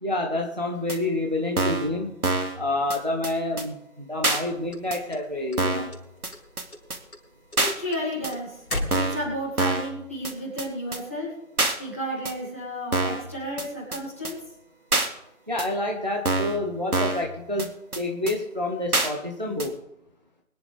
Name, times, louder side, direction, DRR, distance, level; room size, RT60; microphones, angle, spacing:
voice 1, 0.0-2.2 2.6-5.9 15.5-19.8, left 1 dB, 30° right, 1 dB, 1.1 m, -28 dB
sound 1, 0.9-1.0 1.6-1.9 2.2-2.6 2.9-3.0 3.2-3.3 3.6-3.7 4.2-4.4 4.9-5.0 5.6-5.9 6.2-6.3 6.6-6.7 6.9-7.0 7.6-7.7 8.2-8.3 8.9-9.2 9.6-9.9 10.2-10.3 10.6-10.7 10.9-11.0 11.6-11.8 12.3-12.4 12.9-13.2 13.6-13.7 13.9-14.0 14.3-14.4 14.9-15.1 15.6-15.7 16.3-16.6 16.9-17.3 17.6-17.7 17.9-18.0 18.3-18.4 18.9-19.1 19.6-19.7, right 2 dB, 80° right, 2.3 m, -25 dB
sound 2, 4.3-5.6 5.9-6.4 6.7-9.5, left 1 dB, 75° left, 3.8 m, -34 dB
voice 2, 7.6-8.6 9.0-11.3 11.8-14.4, equal, 10° left, -9 dB, 2.3 m, -32 dB
22.5 x 11.0 x 3.5 m, 0.83 s
figure-of-eight pair, 180°, 44 cm